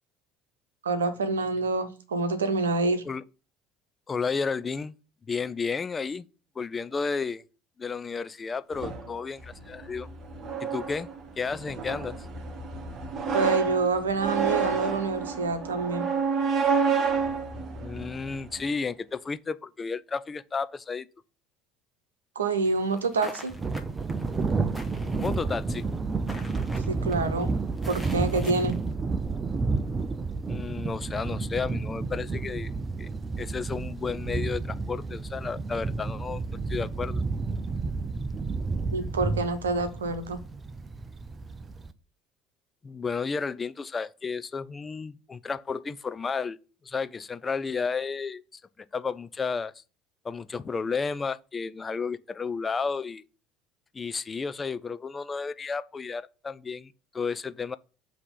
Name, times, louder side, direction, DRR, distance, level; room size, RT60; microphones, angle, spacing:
voice 1, 0.8-3.0 13.3-16.1 22.3-23.5 26.9-27.6 27.9-28.8 38.9-40.4, right 3 dB, 85° right, 0.9 m, -27 dB
voice 2, 4.1-4.9 5.3-6.2 6.6-7.4 7.8-10.1 10.6-11.1 11.4-12.1 17.8-21.1 25.1-25.9 30.5-32.7 33.0-33.1 33.4-36.4 36.7-37.2 42.8-46.6 46.8-48.6 48.9-49.7 50.2-53.2 53.9-57.8, left 5 dB, 30° left, 0.5 m, -32 dB
sound 1, 8.7-18.7, right 5 dB, 45° right, 1.1 m, -30 dB
sound 2, 22.6-28.9, left 1 dB, ahead, 1.2 m, -45 dB
Thunder, 23.5-41.9, right 4 dB, 30° right, 0.6 m, -31 dB
7.8 x 2.9 x 5.6 m
hypercardioid pair, 60°, 0 cm